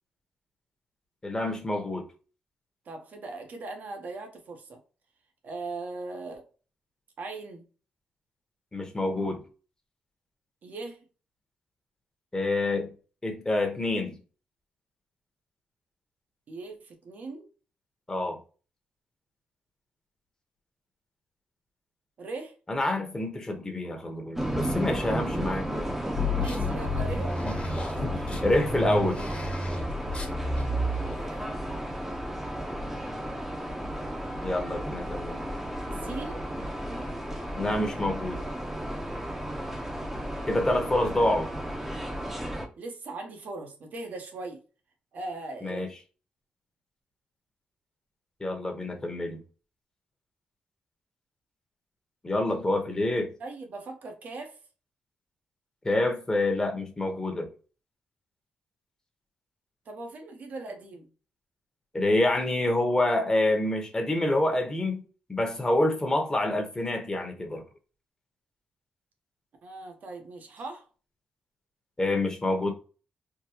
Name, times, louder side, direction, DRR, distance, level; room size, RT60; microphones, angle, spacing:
voice 1, 1.2-2.1 8.7-9.4 12.3-12.9 13.2-14.2 18.1-18.4 22.7-25.9 27.4-29.2 34.4-35.4 37.5-38.4 40.5-41.5 45.6-45.9 48.4-49.4 52.2-53.3 55.8-57.5 61.9-65.0 65.3-67.6 72.0-72.7, left 1 dB, 20° left, 1.0 m, -27 dB
voice 2, 2.8-4.8 5.4-6.5 7.2-7.7 10.6-11.0 16.5-17.5 22.2-22.5 25.4-25.6 26.3-27.6 31.1-31.5 35.9-36.4 42.8-44.6 45.1-45.9 53.4-54.6 59.9-61.1 69.6-70.9, right 3 dB, 60° right, 1.1 m, -39 dB
sound 1, 24.4-42.7, right 1 dB, 5° right, 0.8 m, -33 dB
sound 2, 26.1-31.1, left 1 dB, 40° left, 1.3 m, -32 dB
3.7 x 2.2 x 2.9 m
cardioid pair, 85°, 3 cm